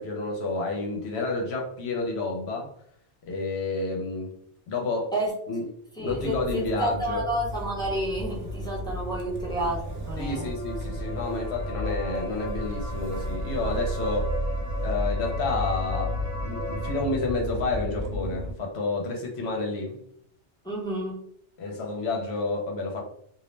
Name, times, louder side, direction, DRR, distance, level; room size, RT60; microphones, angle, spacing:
voice 1, 0.0-2.7 3.3-4.4 4.7-5.1 5.5-5.6 6.0-7.2 10.2-14.3 14.8-20.0 21.6-23.0, left 3 dB, 70° left, 1 dB, 0.8 m, -30 dB
voice 2, 6.0-10.5 20.6-21.2, right 1 dB, 5° left, -5 dB, 0.6 m, -30 dB
Motor vehicle (road) / Engine starting, 6.1-18.5, equal, 85° right, 0.9 m, -33 dB
sound 1, 8.0-17.0, equal, 55° right, 1.1 m, -39 dB
2.3 x 2.0 x 3.1 m, 0.66 s
omnidirectional pair, 1.2 m